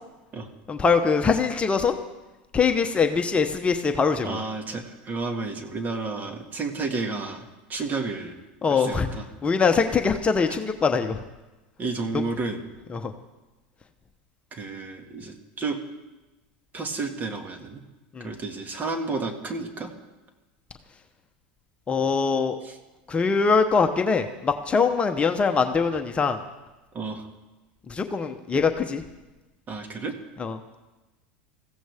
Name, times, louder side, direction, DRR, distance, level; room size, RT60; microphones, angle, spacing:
voice 1, 0.7-2.0 2.5-4.4 8.6-9.1 9.4-11.2 12.1-12.2 12.9-13.1 18.1-18.3 21.9-22.6 23.1-26.4 27.9-29.0 30.4-30.6, left 5 dB, 20° left, 6 dB, 1.0 m, -23 dB
voice 2, 4.2-8.3 8.7-9.2 11.8-12.6 14.5-15.8 16.7-17.8 18.2-19.9 22.6-22.8 26.9-27.3 29.7-30.2, right 3 dB, 35° right, 5 dB, 2.0 m, -31 dB
21.0 x 15.5 x 3.6 m, 1.1 s
hypercardioid pair, 100°, 5 cm